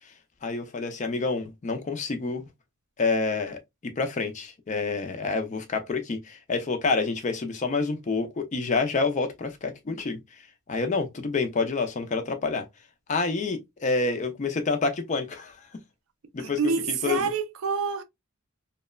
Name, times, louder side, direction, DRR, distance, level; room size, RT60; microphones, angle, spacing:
voice 1, 0.4-2.4 3.0-10.2 10.7-12.7 13.1-15.6 16.3-16.6 16.9-17.3, left 4 dB, 35° left, 0.4 m, -28 dB
voice 2, 16.4-18.0, right 5 dB, 65° right, 0.4 m, -27 dB
2.9 x 2.1 x 2.2 m
head